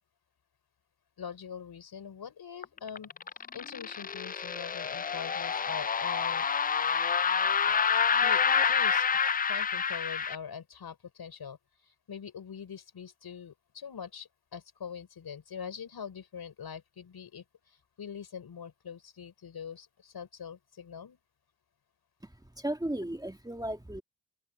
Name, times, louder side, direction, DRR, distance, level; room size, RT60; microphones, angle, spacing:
voice 1, 1.2-3.1 3.5-6.5 7.6-7.7 8.2-9.0 9.5-21.2, left 7 dB, 65° left, 4.9 m, -43 dB
sound 1, 2.6-10.4, left 6 dB, 25° left, 0.4 m, -28 dB
voice 2, 22.2-24.0, right 1 dB, 10° right, 1.8 m, -35 dB
open air
supercardioid pair, 50°, 41 cm